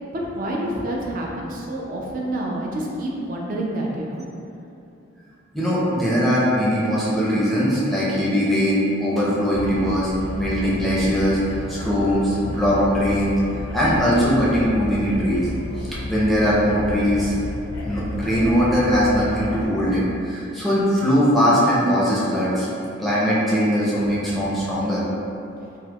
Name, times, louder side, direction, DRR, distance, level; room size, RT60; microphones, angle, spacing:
voice 1, 0.2-4.2, right 1 dB, 45° right, -2 dB, 0.4 m, -28 dB
voice 2, 5.5-11.4 11.7-15.5 16.1-17.3 17.8-22.7 23.0-25.0, equal, ahead, -8 dB, 0.6 m, -20 dB
sound 1, 9.5-19.7, left 1 dB, 75° left, 0.4 m, -32 dB
4.3 x 2.0 x 2.3 m, 2.7 s
head